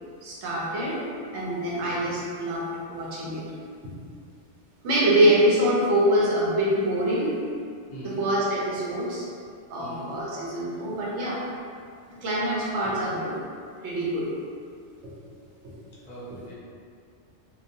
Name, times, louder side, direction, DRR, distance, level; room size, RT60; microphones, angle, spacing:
voice 1, 0.2-1.0 1.3-3.4 3.8-3.9 4.8-7.4 8.0-9.3 9.7-11.4 12.2-13.4 13.8-14.3 15.0-15.1 15.6-15.7, right 1 dB, 75° right, -6 dB, 0.9 m, -25 dB
voice 2, 7.9-8.2 9.8-10.1 16.0-16.5, right 2 dB, 45° left, -8 dB, 0.7 m, -41 dB
2.9 x 2.0 x 2.7 m, 2.3 s
omnidirectional pair, 1.2 m